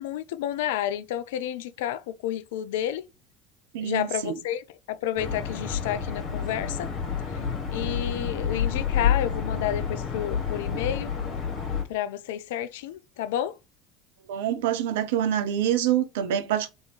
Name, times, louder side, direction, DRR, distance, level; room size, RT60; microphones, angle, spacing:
voice 1, 0.0-3.0 3.8-6.9 7.7-11.1 11.9-13.6, left 11 dB, 70° left, 0.4 m, -30 dB
voice 2, 3.7-4.4 14.3-16.7, right 10 dB, 70° right, 0.6 m, -26 dB
sound 1, 5.2-11.8, left 7 dB, 50° left, 1.8 m, -29 dB
3.8 x 3.5 x 3.1 m
figure-of-eight pair, 65°, 0 cm